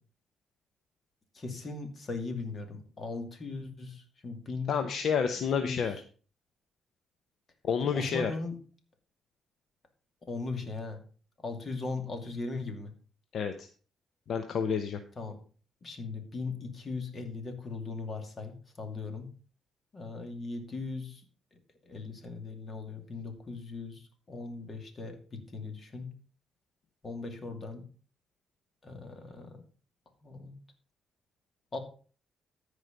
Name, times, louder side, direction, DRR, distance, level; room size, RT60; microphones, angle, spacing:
voice 1, 1.3-4.9 5.6-5.9 7.9-8.6 10.3-11.0 11.4-12.9 15.2-15.4 15.8-19.3 19.9-21.2 21.9-26.1 27.0-27.8 28.8-29.6 30.2-30.6 31.7-31.8, left 3 dB, 40° left, 6 dB, 2.5 m, -38 dB
voice 2, 4.7-6.0 7.6-8.3 13.3-13.7 14.3-15.0, left 6 dB, 65° left, 8 dB, 0.9 m, -29 dB
13.5 x 5.0 x 5.2 m, 0.39 s
cardioid pair, 90°, 0 cm